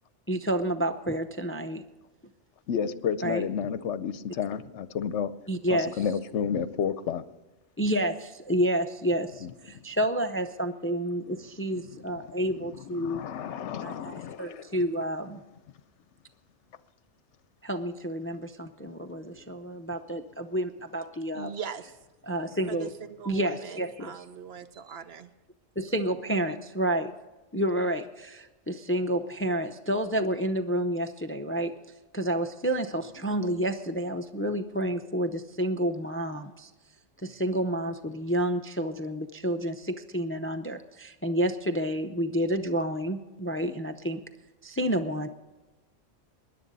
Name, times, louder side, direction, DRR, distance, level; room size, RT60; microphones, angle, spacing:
voice 1, 0.3-1.8 3.2-3.4 5.5-6.0 7.8-13.2 13.8-15.4 17.6-21.5 22.3-22.9 23.3-24.1 25.8-27.1 27.5-31.7 32.1-36.7 37.2-44.2 44.6-45.3, right 1 dB, 20° left, 7 dB, 0.3 m, -29 dB
voice 2, 2.7-5.3 5.7-7.2 9.4-9.5 11.8-12.1 12.9-14.7, left 7 dB, 70° left, 14 dB, 1.0 m, -31 dB
voice 3, 21.3-22.0 22.7-25.3 26.4-26.5, right 7 dB, 60° right, 11 dB, 1.0 m, -40 dB
20.0 x 11.0 x 4.0 m, 1.1 s
omnidirectional pair, 1.3 m